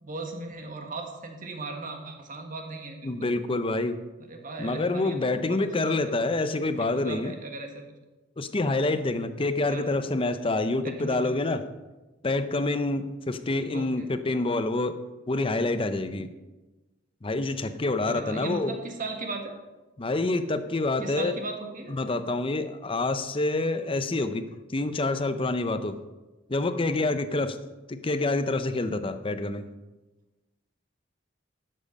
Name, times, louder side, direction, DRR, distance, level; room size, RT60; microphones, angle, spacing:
voice 1, 0.0-3.3 4.2-6.1 6.8-7.8 9.7-10.0 10.8-11.2 13.6-14.1 18.0-19.5 21.0-21.9, right 3 dB, 45° right, 3 dB, 1.5 m, -37 dB
voice 2, 3.0-4.0 4.6-7.3 8.4-11.7 12.2-15.0 15.3-16.3 17.2-18.8 20.0-21.4 21.9-26.0 26.5-27.6 27.9-29.6, left 2 dB, 30° left, 10 dB, 0.6 m, -27 dB
11.5 x 7.7 x 5.3 m, 1.1 s
head